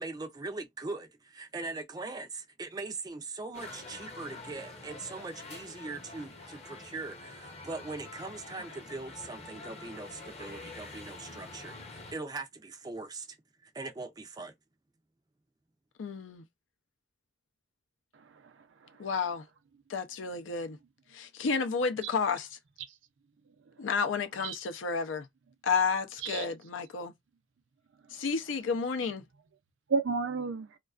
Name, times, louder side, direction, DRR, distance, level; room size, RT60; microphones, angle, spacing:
voice 1, 0.0-13.4 13.6-14.5, right 3 dB, 20° right, 0.3 m, -41 dB
sound 1, 3.5-12.1, left 3 dB, 35° left, 0.7 m, -46 dB
voice 2, 16.0-16.4 19.0-19.4 19.9-20.8 21.1-22.5 23.8-25.3 25.6-27.1 28.1-29.2, left 5 dB, 85° left, 0.5 m, -31 dB
voice 3, 18.1-19.1 23.8-23.9 24.4-24.6 26.2-26.5 29.9-30.8, right 4 dB, 85° right, 0.5 m, -33 dB
2.3 x 2.3 x 2.3 m
head